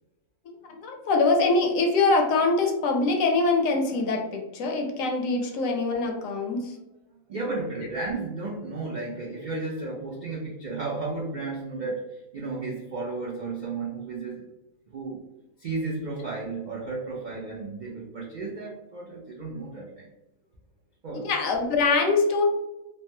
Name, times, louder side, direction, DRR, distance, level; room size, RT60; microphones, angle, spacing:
voice 1, 0.7-6.7 7.8-7.9 21.1-22.4, left 3 dB, 75° left, 2 dB, 0.9 m, -24 dB
voice 2, 7.3-14.4 14.9-15.2 15.6-20.1 21.0-21.3, right 3 dB, 70° right, -4 dB, 0.4 m, -33 dB
3.2 x 2.1 x 2.6 m, 0.96 s
omnidirectional pair, 1.5 m